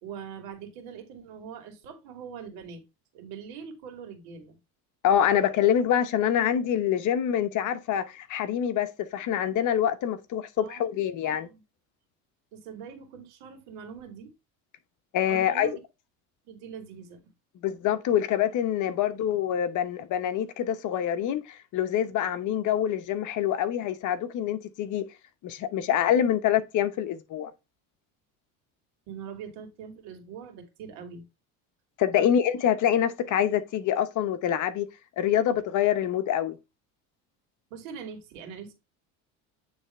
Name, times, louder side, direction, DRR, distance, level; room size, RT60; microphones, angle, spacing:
voice 1, 0.0-2.8 3.1-4.6 10.6-10.9 11.2-11.6 12.5-14.3 15.3-15.8 16.4-17.3 29.1-31.2 32.1-32.3 37.7-38.7, right 7 dB, 80° right, 2.2 m, -42 dB
voice 2, 5.0-11.5 15.1-15.8 17.6-25.0 25.4-27.5 32.0-34.9 35.2-36.6, left 10 dB, 55° left, 1.0 m, -25 dB
8.9 x 3.4 x 4.2 m
cardioid pair, 120°, 37 cm